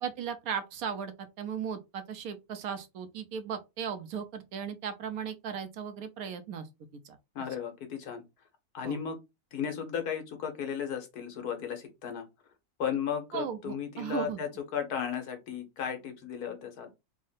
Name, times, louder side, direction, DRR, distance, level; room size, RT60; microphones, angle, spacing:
voice 1, 0.0-6.7 7.0-7.2 8.8-9.0 13.3-14.4, right 7 dB, 70° right, 1.0 m, -36 dB
voice 2, 7.3-8.2 8.7-9.2 9.5-12.3 12.8-16.9, left 7 dB, 80° left, 1.5 m, -35 dB
3.6 x 2.1 x 3.9 m
omnidirectional pair, 1.6 m